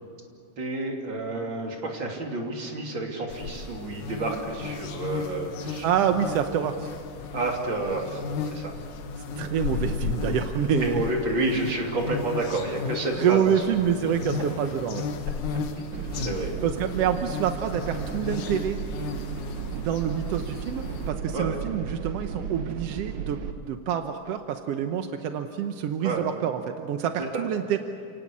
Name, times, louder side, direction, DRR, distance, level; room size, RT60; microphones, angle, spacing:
voice 1, 0.6-5.9 7.3-8.7 10.8-13.5 15.8-16.5 21.3-21.6 26.0-26.3 27.2-27.4, right 2 dB, 35° right, 1 dB, 3.4 m, -30 dB
sound 1, 3.3-21.1, left 4 dB, 70° left, 2.6 m, -34 dB
voice 2, 5.8-6.9 9.4-11.0 13.1-15.0 16.6-18.8 19.7-23.4 23.7-27.8, right 9 dB, 70° right, 7 dB, 1.5 m, -27 dB
sound 2, 15.9-23.5, right 6 dB, 85° right, 1.1 m, -35 dB
29.0 x 18.5 x 8.5 m, 2.4 s
omnidirectional pair, 3.8 m